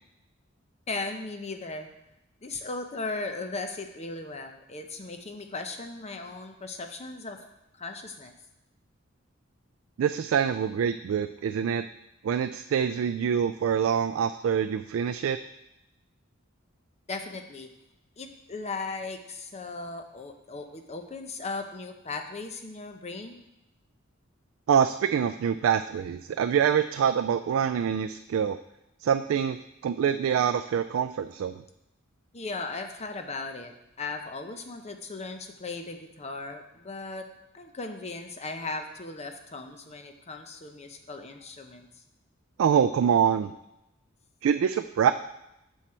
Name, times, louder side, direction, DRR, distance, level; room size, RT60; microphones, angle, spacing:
voice 1, 0.9-1.9 2.4-8.3 17.1-17.7 18.2-23.4 32.3-37.2 37.5-41.9, left 3 dB, 35° left, 6 dB, 0.7 m, -37 dB
voice 2, 10.0-11.8 12.2-15.4 24.7-28.6 29.0-29.6 29.8-31.6 42.6-43.5 44.4-45.1, right 8 dB, 75° right, 9 dB, 0.3 m, -25 dB
7.3 x 6.4 x 4.4 m, 0.88 s
head